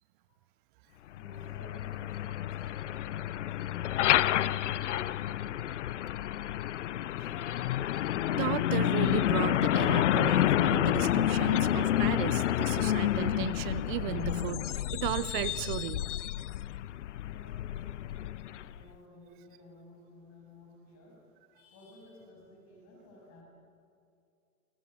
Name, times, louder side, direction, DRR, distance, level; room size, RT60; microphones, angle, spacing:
Truck, 1.1-18.8, left 12 dB, 55° left, 0.7 m, -29 dB
voice 1, 1.1-5.7 17.2-21.2 21.5-23.4, left 1 dB, 35° left, 0 dB, 7.2 m, -54 dB
voice 2, 8.3-16.0, right 15 dB, 35° right, 17 dB, 0.8 m, -35 dB
Acoustic guitar, 10.2-15.4, equal, 15° left, 3.0 m, -46 dB
29.0 x 23.0 x 7.9 m, 2.4 s
figure-of-eight pair, 100°, 45 cm